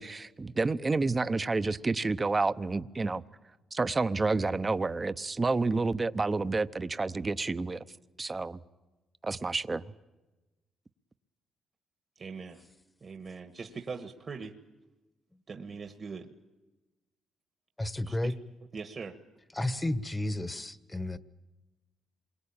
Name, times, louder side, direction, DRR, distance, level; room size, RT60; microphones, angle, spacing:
voice 1, 0.0-3.2 3.7-7.8 8.2-8.6 9.2-9.8, right 3 dB, 25° right, 0.9 m, -29 dB
voice 2, 12.1-12.6 13.0-14.6 15.5-16.3 18.1-18.3 18.7-19.2, right 5 dB, 40° right, 1.5 m, -41 dB
voice 3, 17.8-18.3 19.5-21.2, left 1 dB, 15° left, 1.2 m, -32 dB
27.5 x 22.5 x 8.8 m
cardioid pair, 90°, 0 cm